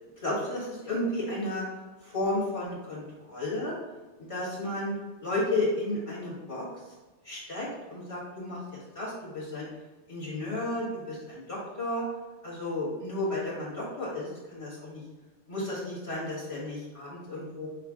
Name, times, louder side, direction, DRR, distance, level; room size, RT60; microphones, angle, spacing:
voice 1, 0.2-1.6 2.0-3.0 3.3-3.7 4.2-4.9 5.2-6.7 7.2-8.6 8.9-9.7 10.1-12.0 12.4-15.0 15.5-17.7, left 1 dB, 30° left, -7 dB, 1.4 m, -32 dB
5.6 x 2.4 x 3.5 m, 1.2 s
omnidirectional pair, 1.2 m